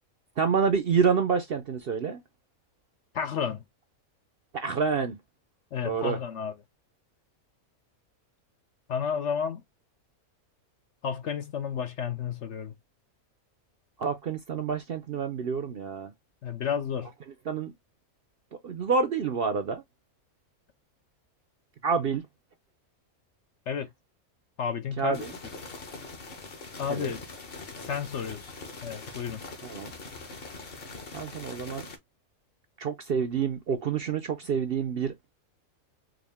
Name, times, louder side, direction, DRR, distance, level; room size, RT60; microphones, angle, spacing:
voice 1, 0.4-2.2 4.5-5.2 5.8-6.2 14.0-16.1 17.5-17.7 18.6-19.8 21.8-22.2 25.0-25.3 26.9-27.1 29.6-29.9 31.1-31.9 32.8-35.3, right 5 dB, 60° right, 0.6 m, -28 dB
voice 2, 3.1-3.6 5.7-6.5 8.9-9.6 11.0-12.7 16.4-17.1 23.7-23.9 24.6-25.3 26.8-27.2 27.8-28.5 28.8-29.4, left 7 dB, 65° left, 0.8 m, -31 dB
sound 1, 25.1-32.0, left 3 dB, 45° left, 1.2 m, -42 dB
4.9 x 2.2 x 3.4 m
omnidirectional pair, 1.5 m